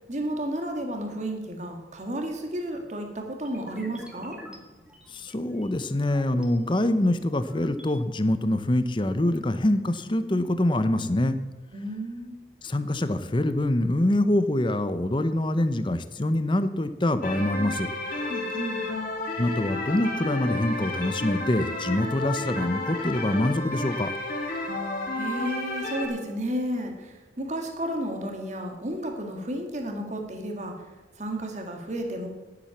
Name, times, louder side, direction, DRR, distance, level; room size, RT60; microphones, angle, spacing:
voice 1, 0.1-4.4 11.7-12.4 18.3-18.8 25.2-30.7 31.2-32.3, right 1 dB, 40° right, 3 dB, 2.1 m, -32 dB
sound 1, 3.4-6.5 7.0-8.0, equal, 5° right, 1.9 m, -48 dB
voice 2, 5.1-11.4 12.6-17.9 19.4-24.1, left 1 dB, 30° left, 11 dB, 0.8 m, -25 dB
sound 2, 17.2-26.1, left 2 dB, 55° left, 2.7 m, -31 dB
10.5 x 10.0 x 7.2 m, 1.2 s
head